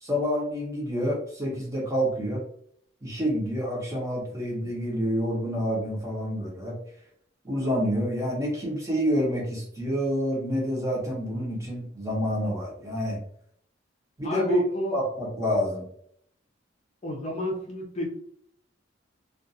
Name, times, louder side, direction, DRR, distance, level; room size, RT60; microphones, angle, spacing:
voice 1, 0.0-2.4 3.0-6.8 7.4-13.2 14.2-14.6 14.9-15.8, equal, 15° right, -2 dB, 0.8 m, -28 dB
voice 2, 14.2-15.0 17.0-18.1, equal, 35° left, -1 dB, 0.6 m, -30 dB
2.4 x 2.4 x 2.6 m, 0.66 s
head